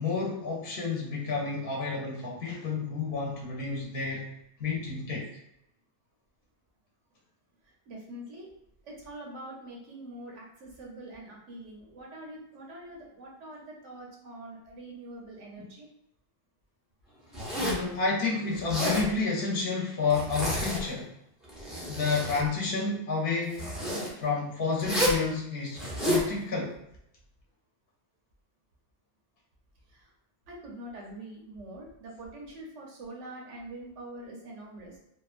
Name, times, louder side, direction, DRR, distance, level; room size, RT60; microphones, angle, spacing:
voice 1, 0.0-4.3 4.6-5.3 15.6-15.7 17.6-21.1 21.9-23.7 24.2-26.8, left 4 dB, 55° left, -3 dB, 0.8 m, -30 dB
voice 2, 7.6-8.5 8.8-15.9 29.9-30.1 30.5-35.0, right 1 dB, 90° right, -2 dB, 1.1 m, -44 dB
Zipper (clothing), 17.3-17.9 18.5-19.1 20.1-21.0 21.4-22.4 23.5-24.1 24.8-25.2 25.7-26.3, equal, ahead, 0.5 m, -30 dB
2.9 x 2.2 x 2.4 m, 0.77 s
omnidirectional pair, 1.2 m